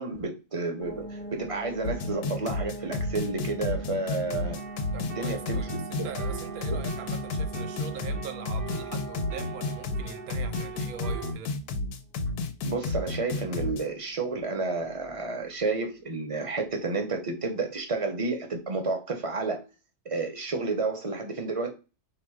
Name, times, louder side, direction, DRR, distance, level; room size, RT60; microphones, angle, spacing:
voice 1, 0.0-4.6 5.0-6.1 12.6-19.7 20.1-21.7, right 3 dB, 30° right, 0.7 m, -31 dB
sound 1, 0.8-15.4, right 1 dB, 45° left, 0.9 m, -43 dB
sound 2, 1.8-13.8, left 3 dB, 80° left, 1.1 m, -32 dB
sound 3, 4.5-11.3, right 8 dB, 60° right, 0.9 m, -42 dB
voice 2, 4.9-11.5, right 7 dB, 75° right, 1.3 m, -42 dB
3.5 x 2.9 x 4.8 m
omnidirectional pair, 1.6 m